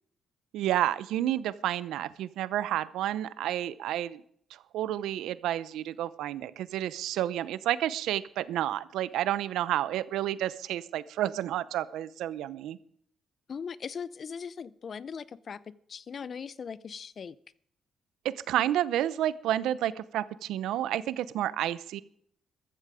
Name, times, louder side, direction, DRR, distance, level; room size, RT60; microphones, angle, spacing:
voice 1, 0.5-4.2 4.5-12.8 18.2-22.0, right 12 dB, 85° right, 17 dB, 0.7 m, -30 dB
voice 2, 13.5-17.4, left 6 dB, 50° left, 19 dB, 0.6 m, -39 dB
14.5 x 13.0 x 5.0 m, 0.65 s
cardioid pair, 90°, 0 cm